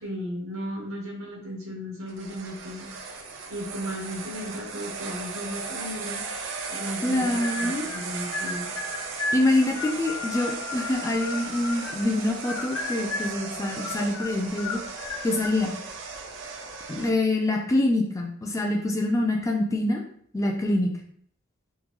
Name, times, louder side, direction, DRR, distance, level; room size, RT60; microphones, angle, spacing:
voice 1, 0.0-2.9 3.5-6.2 6.7-8.7, equal, 80° right, -1 dB, 1.0 m, -35 dB
sound 1, 2.1-17.1, right 4 dB, 60° right, 0.4 m, -36 dB
voice 2, 7.0-7.9 9.3-14.8 15.2-15.7 16.9-20.0 20.3-21.0, left 1 dB, 15° left, 1 dB, 0.3 m, -25 dB
sound 2, 7.4-8.0 8.3-12.1 12.4-13.4 13.8-15.6, left 3 dB, 75° left, 0.4 m, -34 dB
3.6 x 2.2 x 3.0 m, 0.63 s
head